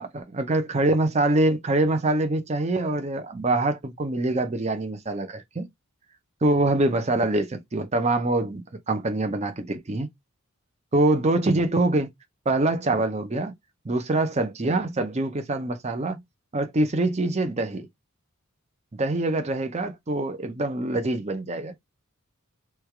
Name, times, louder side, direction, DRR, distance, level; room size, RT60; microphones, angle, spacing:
voice 1, 0.0-5.7 6.4-10.1 10.9-12.1 12.5-13.5 13.8-16.2 16.5-17.9 19.0-21.7, right 2 dB, 30° right, 0.6 m, -24 dB
3.2 x 2.3 x 4.4 m
head